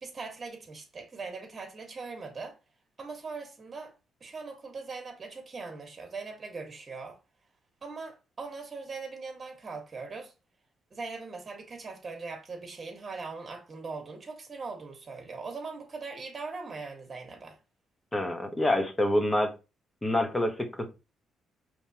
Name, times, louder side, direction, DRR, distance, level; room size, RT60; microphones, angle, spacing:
voice 1, 0.0-2.6 3.0-3.9 4.2-7.2 7.8-10.3 10.9-17.6, right 4 dB, 35° right, 1.6 m, -40 dB
voice 2, 18.1-19.5 20.0-20.9, left 1 dB, 15° left, 1.1 m, -27 dB
5.2 x 3.2 x 2.9 m
cardioid pair, 90°, 0 cm